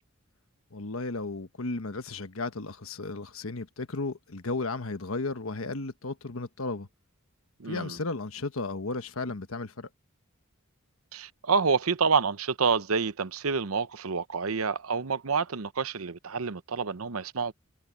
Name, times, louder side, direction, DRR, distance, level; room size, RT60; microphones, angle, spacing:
voice 1, 0.7-6.9 7.6-9.9, left 3 dB, 75° left, 1.3 m, -34 dB
voice 2, 7.6-8.0 11.1-17.5, right 5 dB, 85° right, 0.9 m, -28 dB
head